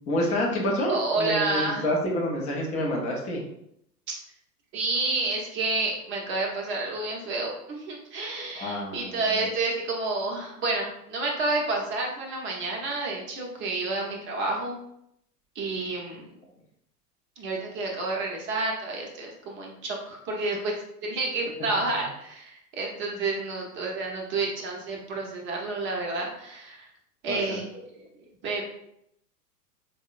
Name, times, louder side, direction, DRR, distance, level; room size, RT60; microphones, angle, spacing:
voice 1, 0.1-3.4 8.5-9.5 21.7-21.8 27.3-27.6, left 1 dB, 15° left, -2 dB, 0.4 m, -28 dB
voice 2, 0.9-1.9 4.1-4.2 4.7-14.8 15.6-16.4 17.4-20.7 21.0-26.9 27.2-27.8 28.4-28.6, right 3 dB, 25° right, -1 dB, 0.7 m, -29 dB
4.2 x 2.0 x 2.4 m, 0.76 s
figure-of-eight pair, 95°, 48 cm